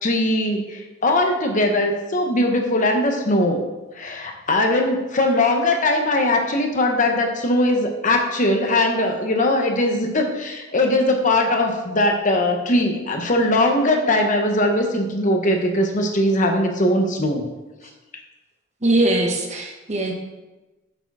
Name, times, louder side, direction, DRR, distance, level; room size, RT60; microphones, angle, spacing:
voice 1, 0.0-3.6 4.0-17.4, left 1 dB, 40° left, 3 dB, 0.9 m, -20 dB
voice 2, 18.8-20.1, right 2 dB, 35° right, 1 dB, 1.0 m, -21 dB
7.9 x 4.9 x 4.7 m, 1.1 s
head